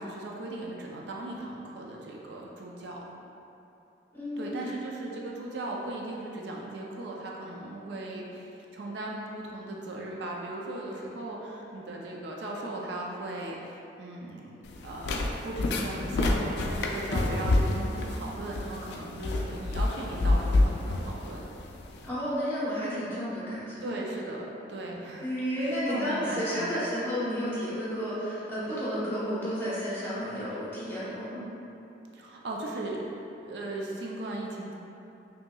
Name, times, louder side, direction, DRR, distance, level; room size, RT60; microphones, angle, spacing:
voice 1, 0.0-3.0 4.4-14.5 14.8-21.4 23.8-26.8 32.1-33.0 33.4-34.7, right 2 dB, 70° right, -2 dB, 0.4 m, -37 dB
voice 2, 4.1-4.7 22.0-24.0 25.2-31.4, equal, 10° left, -10 dB, 1.0 m, -32 dB
sound 1, 14.6-22.1, left 2 dB, 65° left, 0.3 m, -28 dB
5.3 x 2.8 x 2.2 m, 2.9 s
head